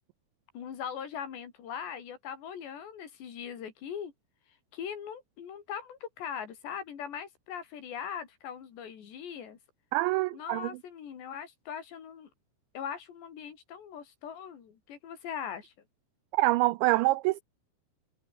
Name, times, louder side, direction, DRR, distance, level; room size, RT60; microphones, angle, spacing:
voice 1, 0.5-4.1 4.5-9.6 10.3-12.3 12.8-15.7, left 8 dB, 60° left, 5.2 m, -40 dB
voice 2, 9.9-10.7 16.3-17.4, right 19 dB, 85° right, 2.6 m, -25 dB
omnidirectional pair, 5.8 m